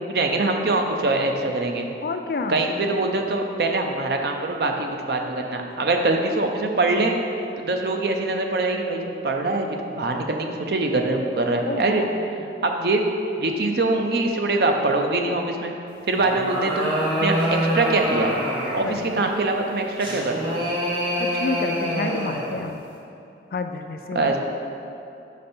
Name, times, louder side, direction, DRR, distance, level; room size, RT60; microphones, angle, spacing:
voice 1, 0.0-1.9 2.5-7.2 7.6-12.0 12.6-13.0 13.4-15.7 16.1-16.9 17.2-18.3 18.7-20.6 24.1-24.4, right 2 dB, 65° right, 3 dB, 0.5 m, -23 dB
voice 2, 2.0-2.6 11.7-12.1 16.1-16.2 18.8-19.3 21.2-22.9 23.5-24.4, left 3 dB, 55° left, 6 dB, 0.3 m, -29 dB
sound 1, 16.1-19.0 20.0-22.6, equal, 30° right, 0.9 m, -25 dB
5.2 x 5.1 x 4.3 m, 2.8 s
head